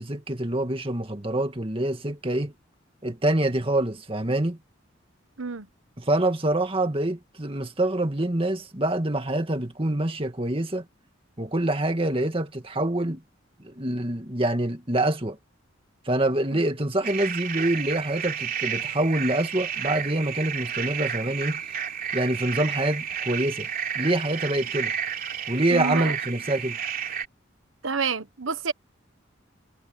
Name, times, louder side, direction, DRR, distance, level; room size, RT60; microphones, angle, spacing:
voice 1, 0.0-2.5 3.0-4.6 6.0-10.8 11.4-13.2 13.6-15.4 16.1-21.6 22.1-23.7 23.9-24.9 25.5-26.8, right 1 dB, 25° right, 2.2 m, -26 dB
sound 1, 17.0-27.3, right 8 dB, 45° right, 3.6 m, -31 dB
voice 2, 25.7-26.1 27.8-28.7, right 5 dB, 80° right, 1.2 m, -28 dB
head